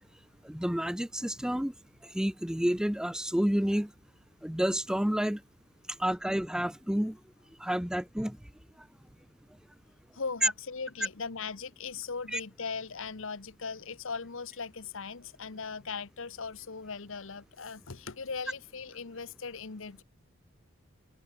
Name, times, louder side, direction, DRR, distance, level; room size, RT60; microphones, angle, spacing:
voice 1, 0.4-1.7 2.1-3.9 4.4-5.4 6.0-7.2 7.6-8.4 10.4-10.5 12.3-12.4, equal, 5° right, 0.5 m, -29 dB
voice 2, 10.1-20.0, left 5 dB, 60° left, 1.0 m, -39 dB
head